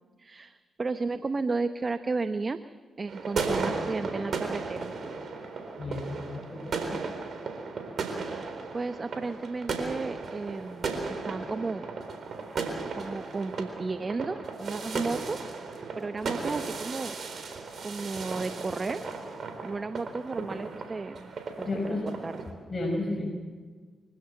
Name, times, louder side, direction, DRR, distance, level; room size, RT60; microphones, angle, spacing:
voice 1, 0.2-2.6 3.0-4.9 8.2-11.9 12.9-15.5 16.0-17.1 17.8-19.0 19.6-21.3 21.6-22.4, right 3 dB, 40° right, 10 dB, 1.0 m, -33 dB
sound 1, 3.1-22.5, right 4 dB, 60° right, 4.0 m, -35 dB
voice 2, 5.8-7.0 21.7-22.1 22.7-23.3, left 2 dB, 35° left, -1 dB, 5.6 m, -32 dB
25.5 x 16.0 x 7.8 m, 1.5 s
hypercardioid pair, 40°, 0 cm